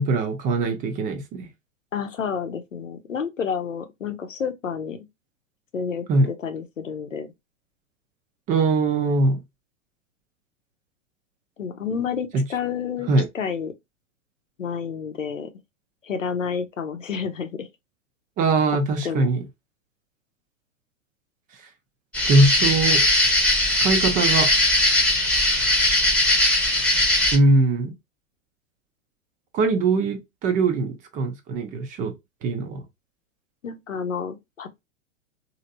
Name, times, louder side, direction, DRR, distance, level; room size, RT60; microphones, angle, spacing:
voice 1, 0.0-1.5 6.1-6.3 8.5-9.4 12.3-12.4 13.1-13.3 18.4-19.4 22.2-23.0 23.8-24.5 27.3-27.9 29.5-32.1 32.4-32.8, right 2 dB, 20° right, 0.5 m, -21 dB
voice 2, 1.9-5.0 5.7-7.3 11.6-13.1 13.3-13.7 14.6-15.5 16.0-17.7 19.0-19.3 33.6-34.7, left 6 dB, 85° left, 0.7 m, -30 dB
sound 1, 22.1-27.4, left 1 dB, 5° left, 0.8 m, -20 dB
3.1 x 2.7 x 2.6 m
figure-of-eight pair, 105°, 37 cm